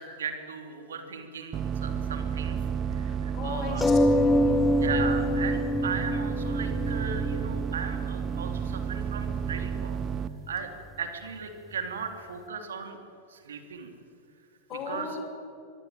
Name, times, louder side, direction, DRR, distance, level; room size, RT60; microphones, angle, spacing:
voice 1, 0.0-2.6 2.9-3.8 4.8-10.0 10.5-10.7 11.0-13.0 13.3-13.9 14.9-15.2, right 6 dB, 65° right, 6 dB, 3.2 m, -37 dB
sound 1, 1.5-10.3, right 7 dB, 30° right, 1.1 m, -31 dB
voice 2, 3.0-4.7 14.7-15.3, left 5 dB, 35° left, 5 dB, 5.5 m, -38 dB
sound 2, 3.8-8.8 9.6-9.7 10.0-10.1, left 1 dB, 10° left, 2.6 m, -26 dB
24.5 x 24.0 x 9.2 m, 2.6 s
figure-of-eight pair, 90°, 0 cm